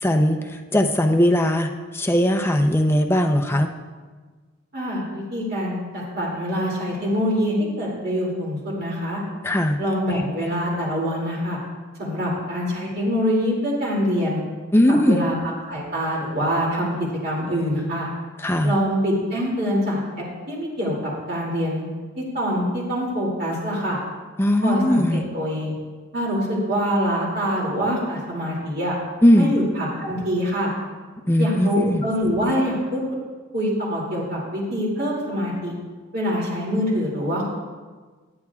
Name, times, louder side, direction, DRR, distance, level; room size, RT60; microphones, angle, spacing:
voice 1, 0.0-3.7 9.4-9.8 14.7-15.2 18.4-18.7 24.4-25.2 29.2-29.5 31.3-32.0, equal, 10° left, 4 dB, 0.6 m, -19 dB
voice 2, 4.7-9.2 9.8-11.6 12.0-14.4 14.9-16.9 17.2-18.1 18.6-20.9 21.3-21.8 22.2-24.0 24.6-25.8 26.1-28.9 29.4-30.7 31.4-33.0 33.5-35.7 36.1-37.4, equal, 50° right, -4 dB, 2.6 m, -25 dB
18.0 x 11.0 x 2.4 m, 1.4 s
head